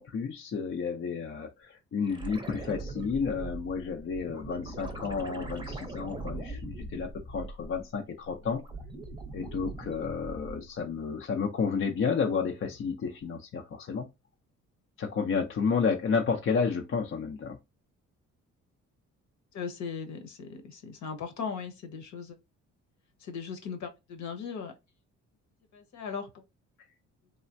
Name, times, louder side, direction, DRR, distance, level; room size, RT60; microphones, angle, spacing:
voice 1, 0.0-8.6 9.3-14.1 15.0-17.6, left 5 dB, 45° left, 0.6 m, -31 dB
sound 1, 2.1-7.9 8.3-10.8 13.2-13.3, right 2 dB, 15° right, 0.7 m, -41 dB
voice 2, 19.5-22.4 23.2-24.7 25.7-26.3, left 6 dB, 65° left, 1.0 m, -38 dB
3.3 x 2.1 x 2.5 m
cardioid pair, 90°, 30 cm